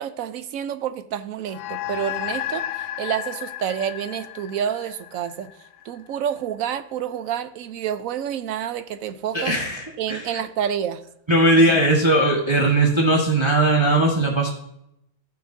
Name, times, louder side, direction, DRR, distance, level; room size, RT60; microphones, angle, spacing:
voice 1, 0.0-5.5 5.8-9.6 10.0-11.0 11.5-11.6, right 9 dB, 85° right, 1.1 m, -28 dB
sound 1, 1.5-6.2, left 12 dB, 85° left, 1.0 m, -33 dB
voice 2, 9.3-10.3 11.3-14.5, right 1 dB, 20° right, 1.2 m, -19 dB
14.5 x 5.8 x 2.7 m
omnidirectional pair, 1.4 m